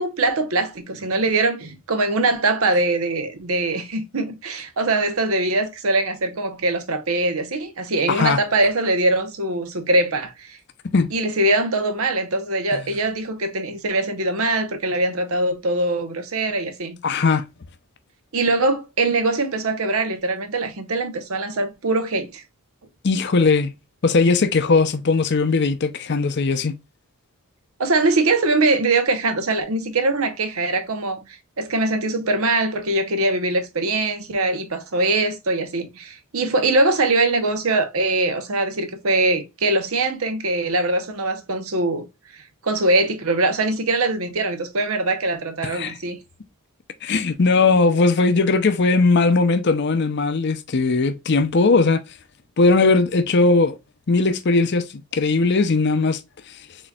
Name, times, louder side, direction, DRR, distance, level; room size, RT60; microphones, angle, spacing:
voice 1, 0.0-10.6 11.1-17.0 18.3-22.4 27.8-31.2 31.6-42.1 42.3-46.2, right 2 dB, 75° right, 0.9 m, -22 dB
voice 2, 8.1-8.4 10.9-11.1 17.0-17.4 23.0-23.7 24.0-26.8 45.7-46.0 47.0-52.0 52.6-53.8 54.1-54.9 55.1-56.2, left 3 dB, 50° left, 0.6 m, -18 dB
4.2 x 3.7 x 2.3 m
head